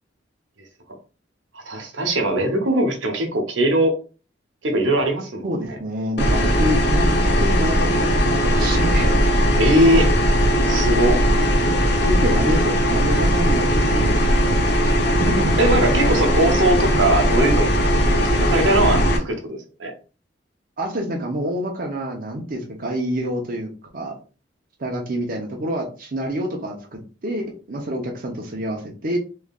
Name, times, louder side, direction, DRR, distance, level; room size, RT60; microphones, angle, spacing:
voice 1, 1.5-3.9 4.6-5.8 9.6-10.2 10.7-11.2 15.6-17.7 18.2-19.9, right 1 dB, 90° right, 3 dB, 1.0 m, -20 dB
voice 2, 5.4-8.1 8.4-9.2 12.0-15.6 20.8-24.1 24.8-29.2, equal, 50° right, 1 dB, 0.7 m, -27 dB
sound 1, 6.2-19.2, equal, 60° left, 0.9 m, -18 dB
3.7 x 3.1 x 2.4 m, 0.34 s
head